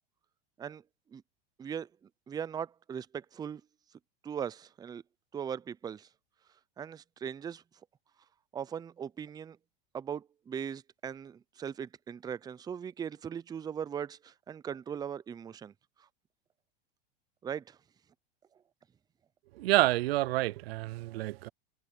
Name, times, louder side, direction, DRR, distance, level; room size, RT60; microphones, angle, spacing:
voice 1, 2.3-3.6 4.2-5.0 5.3-6.1 6.8-7.6 8.5-9.6 9.9-15.7 17.4-17.8, right 8 dB, 15° right, 0.5 m, -39 dB
voice 2, 19.6-21.5, right 17 dB, 80° right, 0.5 m, -28 dB
supercardioid pair, 125°, 30 cm